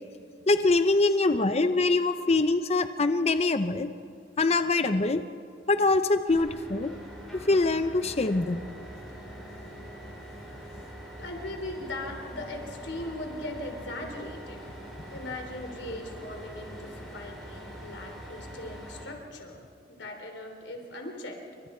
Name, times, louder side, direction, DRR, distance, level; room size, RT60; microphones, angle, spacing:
voice 1, 0.5-3.9 4.4-5.2 5.7-6.9 7.5-8.6 15.6-15.7, left 3 dB, 35° left, 10 dB, 0.7 m, -24 dB
sound 1, 6.3-19.0, equal, ahead, 7.3 m, -43 dB
voice 2, 11.2-14.6 15.1-21.4, left 1 dB, 75° left, 3 dB, 3.5 m, -39 dB
29.0 x 24.5 x 4.5 m, 2.4 s
head